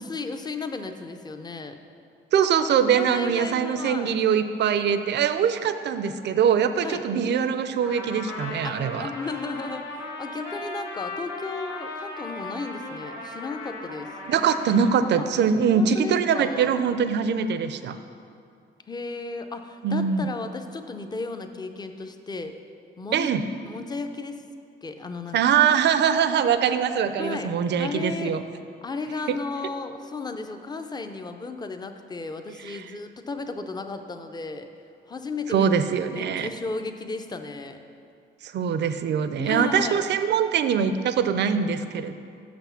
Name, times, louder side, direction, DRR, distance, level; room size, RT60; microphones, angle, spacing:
voice 1, 0.0-1.8 2.9-4.2 6.8-7.0 8.6-14.1 15.2-15.3 15.7-16.7 18.9-22.5 23.0-23.3 23.7-24.4 24.8-25.4 27.2-28.3 28.8-34.7 35.1-35.7 36.1-37.8 39.4-40.0, left 3 dB, 20° left, 7 dB, 0.5 m, -34 dB
voice 2, 2.3-9.1 14.3-18.0 19.8-20.3 23.1-23.4 25.3-28.4 29.3-29.4 32.7-32.8 35.5-36.5 38.4-42.1, right 7 dB, 60° right, 10 dB, 0.5 m, -23 dB
Trumpet, 7.8-15.0, left 2 dB, 90° left, 1.3 m, -37 dB
6.4 x 6.0 x 5.7 m, 2.4 s
cardioid pair, 90°, 20 cm